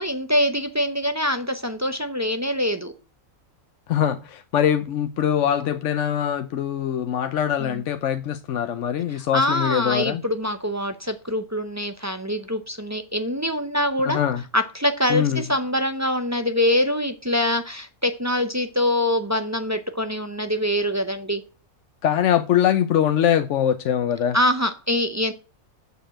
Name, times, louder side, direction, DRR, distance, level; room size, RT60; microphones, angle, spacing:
voice 1, 0.0-2.9 7.6-7.8 9.1-14.2 14.5-21.4 24.3-25.3, left 1 dB, 15° right, 0.6 m, -24 dB
voice 2, 3.9-10.2 14.1-14.4 15.1-15.4 22.0-24.4, left 9 dB, 65° left, 0.9 m, -22 dB
7.1 x 6.8 x 7.6 m
omnidirectional pair, 1.5 m